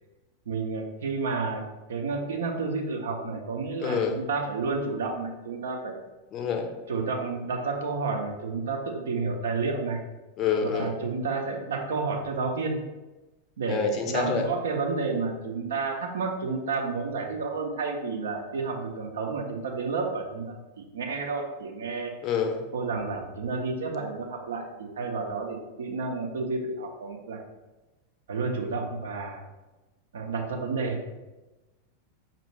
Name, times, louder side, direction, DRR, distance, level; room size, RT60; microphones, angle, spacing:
voice 1, 0.5-1.6 1.9-6.0 6.9-10.0 10.6-12.8 13.6-22.1 22.7-27.4 28.3-29.4 30.1-31.0, right 4 dB, 65° right, 2 dB, 0.6 m, -30 dB
voice 2, 3.8-4.2 6.3-6.7 10.4-10.9 13.7-14.4 22.2-22.6, left 6 dB, 35° left, 4 dB, 0.6 m, -27 dB
5.4 x 2.5 x 3.0 m, 1.1 s
figure-of-eight pair, 90°, 0 cm